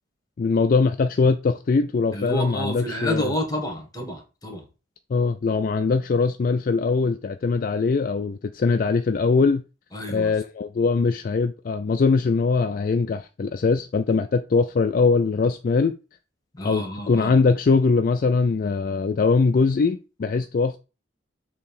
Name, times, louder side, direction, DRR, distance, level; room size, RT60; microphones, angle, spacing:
voice 1, 0.4-3.3 5.1-9.6 10.1-15.9 16.6-20.8, left 4 dB, 45° left, 0.3 m, -21 dB
voice 2, 2.1-4.6 9.9-10.3 16.5-17.4, equal, 20° left, 1.6 m, -29 dB
6.7 x 3.0 x 5.4 m
head